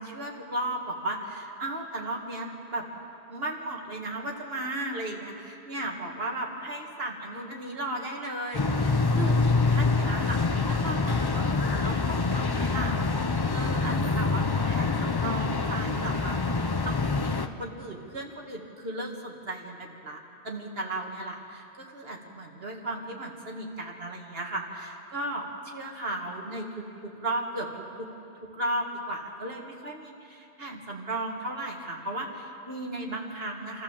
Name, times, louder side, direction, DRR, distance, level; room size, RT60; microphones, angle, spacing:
voice 1, 0.0-2.9 3.3-20.2 20.4-27.7 28.0-28.1 28.4-33.8, right 1 dB, 65° right, 0 dB, 2.3 m, -35 dB
sound 1, 8.5-17.5, left 3 dB, 25° left, 0.6 m, -26 dB
27.0 x 13.5 x 7.3 m, 2.7 s
omnidirectional pair, 1.1 m